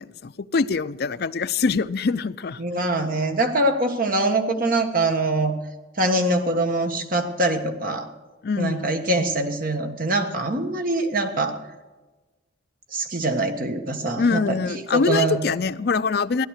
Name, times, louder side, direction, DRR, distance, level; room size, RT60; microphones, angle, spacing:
voice 1, 0.0-2.6 8.4-8.9 14.2-16.5, left 4 dB, 55° left, 0.5 m, -24 dB
voice 2, 2.6-5.5 6.0-8.1 8.5-11.6 12.9-15.4, right 2 dB, 45° right, 1.5 m, -23 dB
16.5 x 11.0 x 6.5 m
head